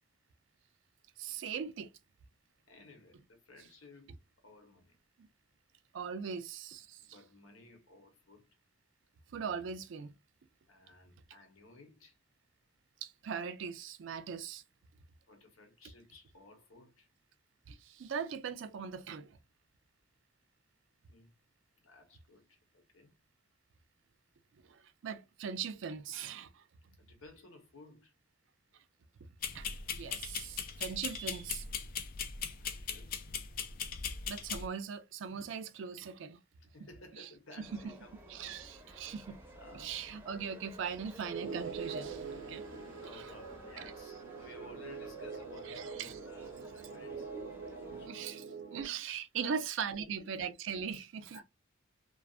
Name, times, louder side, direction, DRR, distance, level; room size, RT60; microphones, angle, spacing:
voice 1, 1.2-1.9 5.9-7.2 9.3-10.1 13.0-14.6 17.7-19.4 24.6-27.0 29.5-31.6 34.3-36.4 37.2-37.3 37.6-37.8 38.3-39.4 39.7-42.8 43.1-43.2 43.8-43.9 45.7-46.2 47.9-48.4 48.7-51.4, right 6 dB, 65° right, 0.4 m, -40 dB
voice 2, 2.7-5.0 7.0-8.6 10.7-12.2 15.3-17.1 21.1-21.3 21.8-23.1 27.0-28.1 32.6-33.2 36.6-38.2 38.4-39.0 39.6-40.0 42.9-48.5 48.7-48.8 49.3-50.3 51.3-51.4, left 2 dB, 85° left, 0.8 m, -56 dB
sound 1, 29.4-34.7, left 7 dB, 45° left, 0.3 m, -39 dB
sound 2, 37.6-48.1, right 1 dB, 10° right, 0.6 m, -53 dB
sound 3, 41.3-48.8, right 5 dB, 90° right, 0.8 m, -44 dB
2.5 x 2.3 x 2.2 m
head